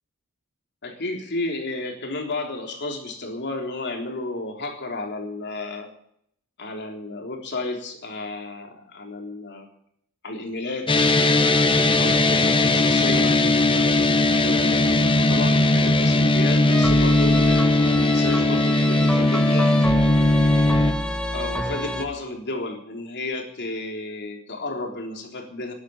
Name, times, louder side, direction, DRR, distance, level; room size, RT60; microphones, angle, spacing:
voice 1, 0.8-5.9 6.6-9.7 10.2-10.9 12.0-13.4 14.3-19.7 21.3-25.7, left 2 dB, 50° left, 2 dB, 3.7 m, -32 dB
sound 1, 10.9-20.9, left 2 dB, 25° left, 1.2 m, -19 dB
sound 2, 16.7-22.1, left 1 dB, 5° left, 1.4 m, -28 dB
12.0 x 11.5 x 9.1 m, 0.70 s
head